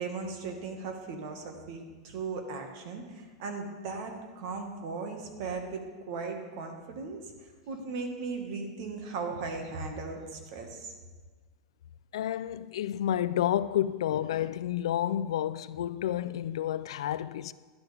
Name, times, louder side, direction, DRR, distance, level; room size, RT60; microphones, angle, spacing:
voice 1, 0.0-10.9, right 4 dB, 45° right, 1.6 m, -37 dB
voice 2, 12.1-17.5, left 11 dB, 85° left, 0.4 m, -30 dB
12.0 x 11.5 x 3.4 m
supercardioid pair, 170°, 3 cm